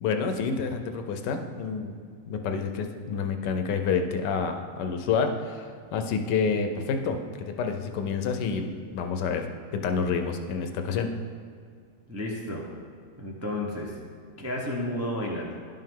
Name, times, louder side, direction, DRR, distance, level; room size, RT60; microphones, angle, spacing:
voice 1, 0.0-1.9 2.3-9.5 9.7-11.1, left 5 dB, 85° left, 7 dB, 1.3 m, -28 dB
voice 2, 12.1-12.7 13.2-13.9 14.4-15.5, left 1 dB, 20° right, -2 dB, 0.4 m, -32 dB
11.0 x 5.6 x 3.7 m, 2.1 s
omnidirectional pair, 1.8 m